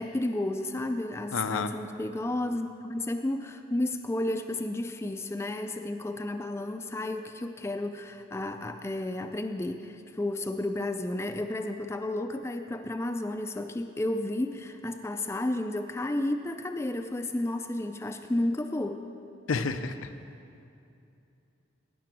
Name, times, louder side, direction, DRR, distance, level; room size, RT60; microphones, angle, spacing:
voice 1, 0.0-19.0, left 1 dB, 15° left, 7 dB, 0.3 m, -32 dB
voice 2, 1.3-1.7 19.5-20.1, left 4 dB, 85° left, 9 dB, 0.5 m, -30 dB
15.5 x 5.9 x 6.0 m, 2.7 s
head